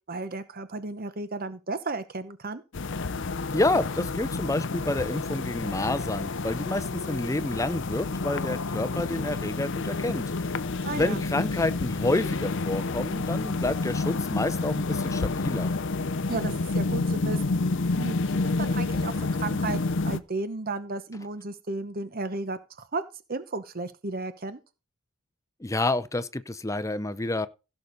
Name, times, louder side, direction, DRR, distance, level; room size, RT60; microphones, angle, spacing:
voice 1, 0.1-2.6 10.8-11.2 16.3-17.5 17.9-18.2 18.6-23.0 23.3-24.6, right 3 dB, 40° right, 0.9 m, -34 dB
sound 1, 2.7-20.2, left 3 dB, 55° left, 0.7 m, -29 dB
voice 2, 3.5-10.5 10.9-15.7 25.6-27.5, left 2 dB, 15° left, 0.6 m, -29 dB
16.0 x 6.7 x 4.0 m
head